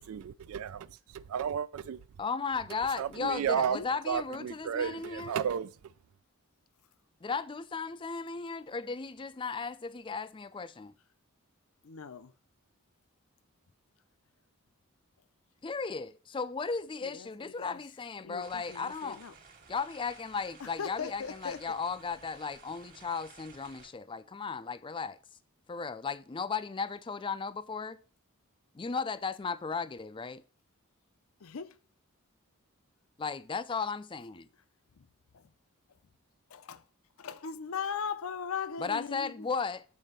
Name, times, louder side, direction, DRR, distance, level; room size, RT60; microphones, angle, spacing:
voice 1, 0.1-0.9 1.1-2.0 3.0-3.8 4.1-5.7, right 8 dB, 75° right, 0.3 m, -32 dB
voice 2, 2.2-5.4 7.2-10.9 15.6-19.2 19.7-25.2 25.7-28.0 28.7-30.4 33.2-34.5 38.8-39.8, left 5 dB, 20° left, 0.4 m, -35 dB
voice 3, 3.5-3.9 11.8-12.3 17.0-17.8 18.2-19.3 20.6-21.8 31.4-31.8 35.0-35.1 35.3-35.5 36.5-36.8 37.2-39.5, left 6 dB, 70° left, 0.6 m, -39 dB
sound 1, 18.4-23.9, right 5 dB, 40° right, 1.4 m, -55 dB
7.5 x 4.4 x 6.5 m
head